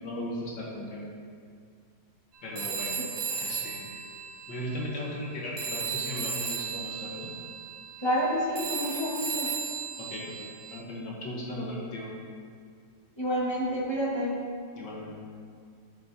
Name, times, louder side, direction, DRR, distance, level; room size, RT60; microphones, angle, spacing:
voice 1, 0.0-1.1 2.4-3.0 3.3-4.0 4.5-7.3 10.0-12.1 14.8-15.2, left 1 dB, 75° left, -4 dB, 1.8 m, -37 dB
Telephone, 2.5-5.3 5.6-10.8, right 5 dB, 60° right, 1.1 m, -35 dB
voice 2, 8.0-9.5 13.2-14.4, equal, 20° left, -5 dB, 1.0 m, -29 dB
8.6 x 7.7 x 2.7 m, 2.1 s
omnidirectional pair, 2.0 m